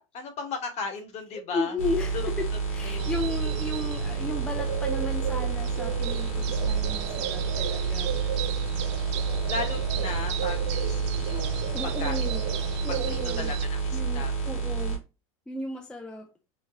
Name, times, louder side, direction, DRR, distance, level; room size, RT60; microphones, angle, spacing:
voice 1, 0.1-1.8 2.1-2.2 2.8-3.1 9.5-12.2 12.9-14.3, left 5 dB, 40° left, 1.0 m, -36 dB
voice 2, 1.3-8.2 11.7-12.4 12.8-13.5 13.9-15.1 15.5-16.3, left 2 dB, 5° left, 0.4 m, -35 dB
sound 1, 1.8-15.0, right 5 dB, 75° left, 1.5 m, -29 dB
sound 2, 3.0-13.7, right 10 dB, 60° right, 0.4 m, -34 dB
3.2 x 2.1 x 3.4 m
hypercardioid pair, 110°, 17 cm